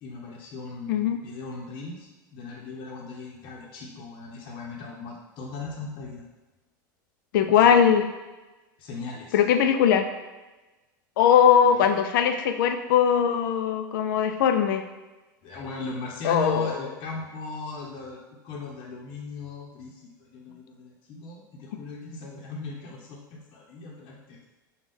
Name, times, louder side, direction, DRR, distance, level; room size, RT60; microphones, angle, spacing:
voice 1, 0.0-6.2 7.5-7.8 8.8-9.4 11.7-11.9 15.4-18.2 18.4-24.4, left 3 dB, 50° left, -3 dB, 0.9 m, -38 dB
voice 2, 7.3-8.1 9.3-10.1 11.2-14.8 16.2-16.8, left 8 dB, 75° left, 7 dB, 0.4 m, -20 dB
5.2 x 2.4 x 3.6 m, 1.1 s
hypercardioid pair, 105°, 11 cm